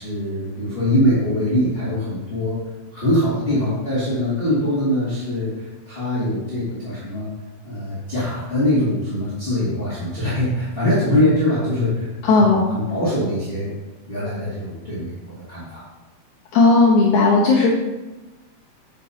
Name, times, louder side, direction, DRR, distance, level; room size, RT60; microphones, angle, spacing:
voice 1, 0.0-2.6 2.9-7.3 7.6-13.7 14.0-15.8, left 1 dB, 20° left, -10 dB, 1.7 m, -22 dB
voice 2, 12.3-12.7 16.5-17.7, left 3 dB, 65° left, -4 dB, 2.0 m, -15 dB
9.9 x 7.0 x 2.8 m, 1.1 s
omnidirectional pair, 4.3 m